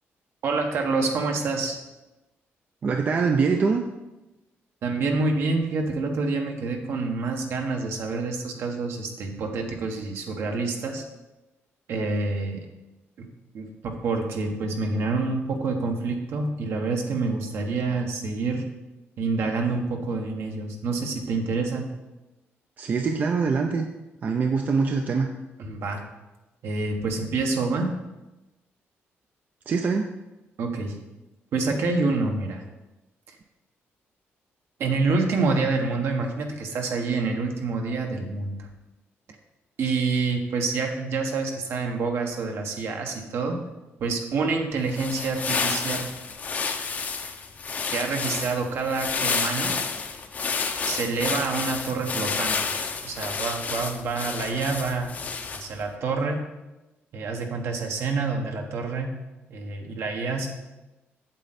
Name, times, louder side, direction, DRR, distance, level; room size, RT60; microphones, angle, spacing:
voice 1, 0.4-1.8 4.8-11.0 11.9-12.6 13.2-13.3 13.5-18.6 19.2-21.8 25.6-26.0 26.6-27.9 30.6-31.0 31.5-32.6 34.8-38.7 39.8-43.5 44.0-46.1 47.9-49.7 50.8-55.1 55.5-56.4 57.1-59.1 59.5-60.5, right 3 dB, 65° right, 3 dB, 1.4 m, -27 dB
voice 2, 2.8-3.8 22.8-23.9 24.2-25.3 29.7-30.1, right 5 dB, 40° right, 4 dB, 0.5 m, -23 dB
sound 1, 44.8-55.8, left 5 dB, 35° left, 0.7 m, -30 dB
8.2 x 7.7 x 4.2 m, 1.0 s
cardioid pair, 165°, 5 cm